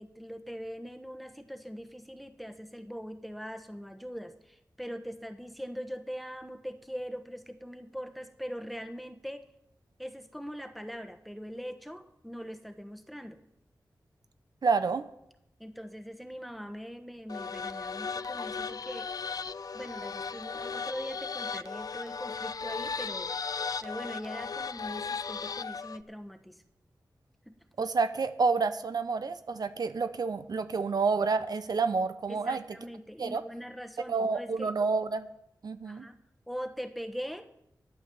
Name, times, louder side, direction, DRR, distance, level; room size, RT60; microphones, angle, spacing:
voice 1, 0.0-9.5 10.0-13.4 15.6-19.1 19.7-23.3 23.8-26.6 27.4-27.6 32.3-34.7 35.8-36.2 36.5-37.5, equal, ahead, 8 dB, 1.1 m, -41 dB
voice 2, 14.6-15.0 27.8-32.6 33.2-33.4 34.1-35.3 35.6-36.1, right 4 dB, 70° right, 11 dB, 0.7 m, -29 dB
sound 1, 17.3-26.0, left 5 dB, 60° left, 0.4 m, -36 dB
11.0 x 8.8 x 6.8 m, 0.81 s
wide cardioid pair, 65°, 7 cm